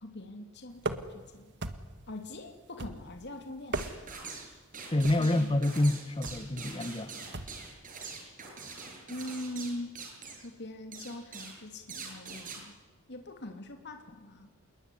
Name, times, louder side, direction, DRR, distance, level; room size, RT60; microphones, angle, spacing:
voice 1, 0.0-1.5 2.1-3.8 5.2-5.6 9.1-9.9 10.3-12.8 13.1-14.5, left 1 dB, 55° left, 5 dB, 2.9 m, -42 dB
sound 1, 0.8-1.3 1.6-2.1 2.8-3.2 3.6-4.2 5.0-5.4 6.2-6.5 7.3-7.7, right 2 dB, 55° right, 1.9 m, -37 dB
sound 2, 3.7-4.5 4.7-10.5 10.9-11.6 11.9-12.6, right 5 dB, 40° right, 7.5 m, -44 dB
voice 2, 4.9-7.1, left 1 dB, 25° left, 11 dB, 1.1 m, -27 dB
27.5 x 21.5 x 10.0 m, 1.3 s
head